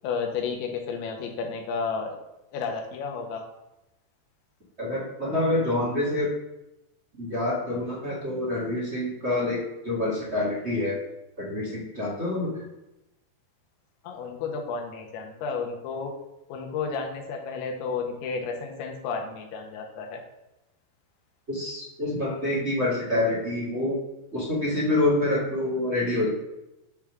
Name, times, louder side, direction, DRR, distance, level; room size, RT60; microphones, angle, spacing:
voice 1, 0.0-2.2 2.5-3.4 14.0-16.1 16.5-20.2, left 5 dB, 90° left, 2 dB, 3.4 m, -32 dB
voice 2, 4.8-6.3 7.1-9.6 9.8-11.0 11.4-12.6 21.5-24.0 24.3-26.3, left 2 dB, 45° right, -6 dB, 0.8 m, -27 dB
9.5 x 3.6 x 6.2 m, 0.92 s
omnidirectional pair, 5.1 m